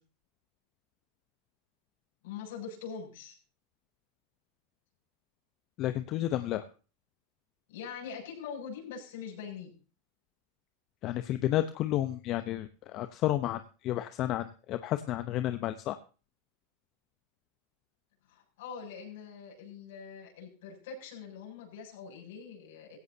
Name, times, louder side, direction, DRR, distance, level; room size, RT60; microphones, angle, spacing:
voice 1, 2.2-3.3 7.7-9.7 18.3-23.0, left 6 dB, 75° left, 0 dB, 7.8 m, -43 dB
voice 2, 5.8-6.6 11.0-16.0, left 13 dB, 45° left, 10 dB, 0.9 m, -31 dB
16.5 x 16.5 x 2.9 m, 0.36 s
hypercardioid pair, 110°, 0 cm